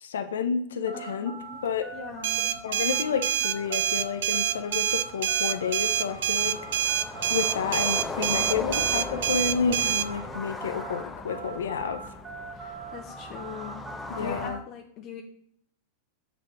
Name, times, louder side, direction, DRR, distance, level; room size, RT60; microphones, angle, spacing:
voice 1, 0.0-1.3 1.6-1.9 2.6-6.6 7.3-12.0 14.1-14.6, left 6 dB, 85° left, 9 dB, 0.7 m, -30 dB
voice 2, 0.9-1.6 1.9-2.6 12.5-13.9 14.2-15.2, left 7 dB, 45° left, 2 dB, 0.9 m, -41 dB
sound 1, 0.9-11.0 11.3-14.5, right 5 dB, 30° right, 2.1 m, -41 dB
sound 2, 1.5-1.6 2.0-2.1 2.3-14.5, left 3 dB, 15° left, 0.7 m, -39 dB
sound 3, 2.2-10.1, right 10 dB, 75° right, 0.4 m, -26 dB
6.7 x 4.1 x 4.5 m, 0.66 s
hypercardioid pair, 120°, 0 cm